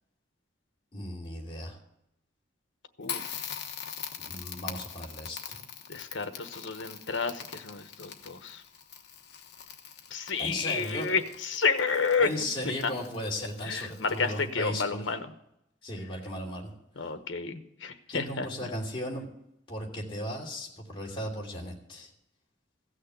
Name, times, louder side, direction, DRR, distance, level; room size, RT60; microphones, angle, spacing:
voice 1, 0.9-1.8 4.2-5.6 10.4-11.1 12.2-15.1 15.8-16.7 18.1-19.3 19.7-22.1, left 1 dB, 25° left, -2 dB, 2.8 m, -36 dB
Crackle, 3.0-14.6, left 8 dB, 60° left, 1.1 m, -43 dB
voice 2, 5.9-8.6 10.1-12.3 12.8-12.9 13.6-15.3 17.0-18.7, left 5 dB, 80° left, 8 dB, 1.1 m, -30 dB
16.0 x 6.5 x 8.2 m, 0.80 s
head